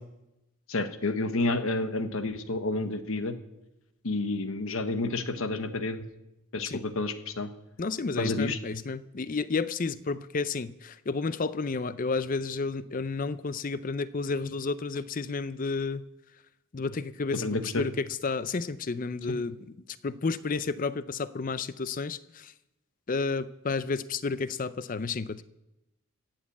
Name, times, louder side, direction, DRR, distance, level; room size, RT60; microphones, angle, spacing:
voice 1, 0.7-3.4 4.0-6.0 6.5-7.5 8.2-8.6 17.3-17.9 19.3-19.4, left 2 dB, 65° left, 10 dB, 1.1 m, -30 dB
voice 2, 7.8-16.1 16.7-19.6 20.0-22.5 23.1-25.4, left 4 dB, 35° left, 16 dB, 0.5 m, -31 dB
15.5 x 7.3 x 8.4 m, 0.94 s
head